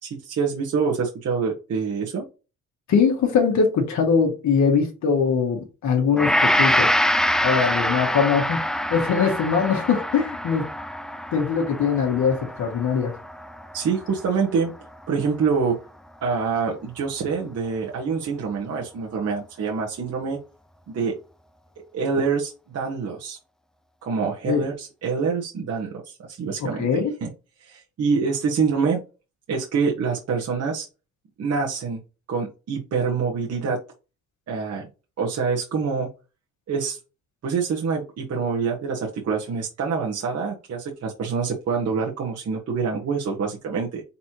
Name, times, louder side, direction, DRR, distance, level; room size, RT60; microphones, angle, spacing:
voice 1, 0.0-2.3 13.7-14.7 15.1-15.8 16.2-20.4 20.9-21.2 21.9-23.4 24.0-27.3 27.6-29.0 29.5-30.9 31.4-32.0 32.3-33.8 34.5-34.9 35.2-36.1 36.7-37.0 37.4-44.0, right 5 dB, 55° right, 1.2 m, -26 dB
voice 2, 2.9-6.9 7.4-8.6 8.9-10.7 11.3-13.1 24.4-24.7 26.6-27.1, left 6 dB, 70° left, 1.5 m, -22 dB
Gong, 6.2-14.5 14.9-15.1, left 1 dB, ahead, 0.4 m, -25 dB
4.3 x 4.1 x 2.9 m
cardioid pair, 90°, 30 cm